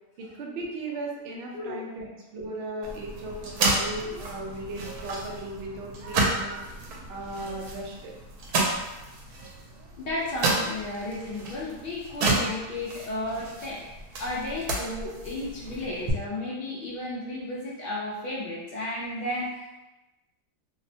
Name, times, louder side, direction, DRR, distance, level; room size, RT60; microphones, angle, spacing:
voice 1, 0.2-6.6 7.1-8.1 12.5-12.6, right 2 dB, 70° right, -1 dB, 0.6 m, -37 dB
voice 2, 1.5-1.8 10.0-19.8, left 1 dB, 80° left, -6 dB, 0.5 m, -33 dB
sound 1, 2.8-16.1, right 2 dB, 85° right, 1.1 m, -31 dB
2.8 x 2.1 x 2.6 m, 1.0 s
omnidirectional pair, 1.6 m